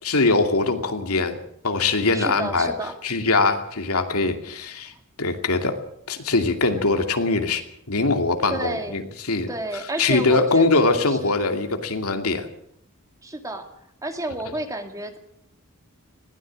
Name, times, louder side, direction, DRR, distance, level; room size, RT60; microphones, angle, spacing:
voice 1, 0.0-1.4 1.6-2.7 3.0-4.9 5.2-5.8 6.1-7.6 7.9-9.5 10.0-12.5, left 3 dB, 80° left, 5 dB, 2.5 m, -22 dB
voice 2, 2.1-3.5 8.5-9.0 9.5-10.7 11.2-11.4 13.2-13.7 14.0-15.2, right 1 dB, 15° right, 6 dB, 2.2 m, -31 dB
21.0 x 16.5 x 7.6 m, 0.71 s
head